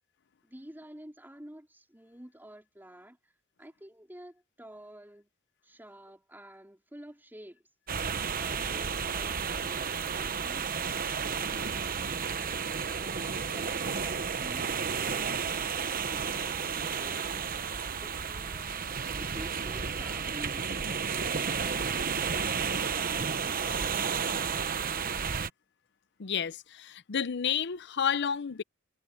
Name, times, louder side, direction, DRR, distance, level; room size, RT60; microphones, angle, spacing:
voice 1, 0.4-3.2 3.6-5.3 5.6-7.6 8.4-10.7 12.9-15.5 16.3-18.9 19.2-21.9, right 1 dB, 10° right, 4.4 m, -50 dB
sound 1, 7.9-25.5, right 6 dB, 45° right, 1.0 m, -32 dB
voice 2, 26.2-28.6, left 7 dB, 60° left, 0.6 m, -31 dB
head